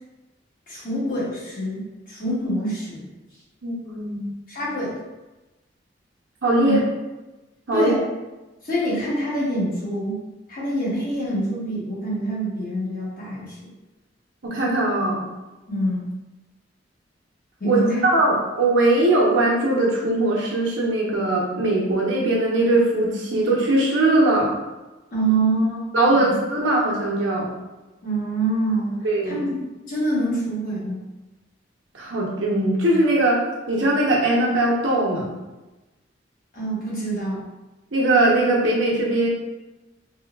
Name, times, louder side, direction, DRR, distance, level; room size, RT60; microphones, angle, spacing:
voice 1, 0.7-3.1 4.5-5.0 6.6-6.8 7.7-8.0 8.6-10.2 10.5-13.7 15.7-16.1 17.6-18.0 25.1-25.8 26.1-26.3 28.0-29.6 29.9-31.1 36.5-37.5, right 1 dB, 50° left, -8 dB, 1.3 m, -25 dB
voice 2, 3.6-4.3 6.4-6.8 7.7-7.9 14.4-15.2 17.6-24.5 25.9-27.5 29.0-29.4 31.9-35.3 37.9-39.3, right 2 dB, 90° right, -4 dB, 0.8 m, -20 dB
4.3 x 2.3 x 2.3 m, 1.1 s
head